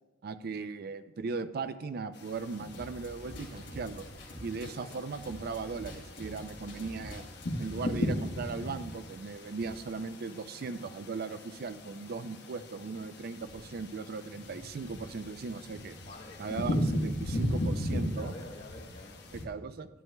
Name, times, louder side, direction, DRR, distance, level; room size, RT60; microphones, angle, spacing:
voice 1, 0.2-4.1 4.4-7.2 7.6-16.0 16.4-18.3 19.3-19.9, right 4 dB, 55° right, 12 dB, 0.4 m, -38 dB
sound 1, 2.1-19.5, left 1 dB, 60° left, 1.2 m, -37 dB
sound 2, 2.7-7.7, equal, 80° left, 2.4 m, -46 dB
voice 2, 4.5-5.0 16.0-16.6 18.1-19.2, left 2 dB, 40° left, 0 dB, 0.9 m, -49 dB
11.0 x 10.5 x 2.2 m, 1.2 s
head